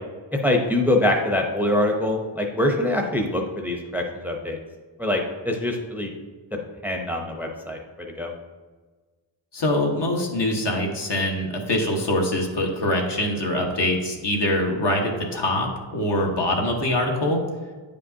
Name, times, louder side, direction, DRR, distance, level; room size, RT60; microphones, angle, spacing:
voice 1, 0.4-4.6 5.0-6.1 6.8-7.8 8.2-8.3, left 1 dB, 5° right, 1 dB, 0.7 m, -24 dB
voice 2, 9.5-17.4, left 1 dB, 55° left, 0 dB, 1.3 m, -24 dB
9.3 x 5.1 x 2.7 m, 1.4 s
wide cardioid pair, 85°, 48 cm